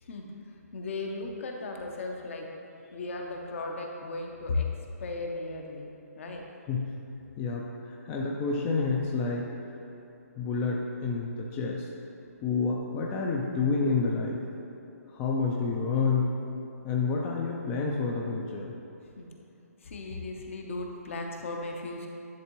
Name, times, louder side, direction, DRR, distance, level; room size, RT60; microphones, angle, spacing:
voice 1, 0.0-2.5 2.9-4.7 5.0-5.9 6.2-6.5 19.2-19.3 19.8-22.1, left 3 dB, 50° left, 2 dB, 0.8 m, -36 dB
voice 2, 7.4-9.5 10.4-11.9 12.4-14.4 15.1-16.4 16.8-18.7, left 4 dB, 15° left, -2 dB, 0.3 m, -29 dB
10.5 x 3.6 x 3.0 m, 2.9 s
hypercardioid pair, 150°, 9 cm